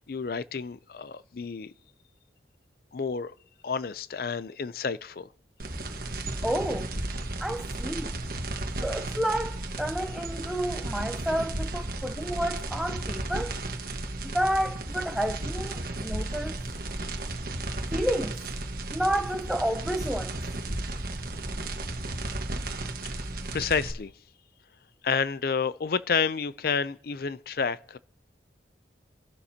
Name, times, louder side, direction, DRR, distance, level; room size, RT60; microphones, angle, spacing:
voice 1, 0.0-1.7 2.9-3.3 3.6-5.3 23.1-24.1 25.0-28.0, left 5 dB, 55° left, 0.5 m, -30 dB
sound 1, 5.6-23.9, right 2 dB, 50° right, 1.4 m, -34 dB
voice 2, 6.4-6.9 7.4-8.1 8.8-13.5 14.2-16.6 17.9-18.3 18.9-20.4, equal, 5° right, 0.7 m, -30 dB
26.5 x 11.5 x 2.8 m
head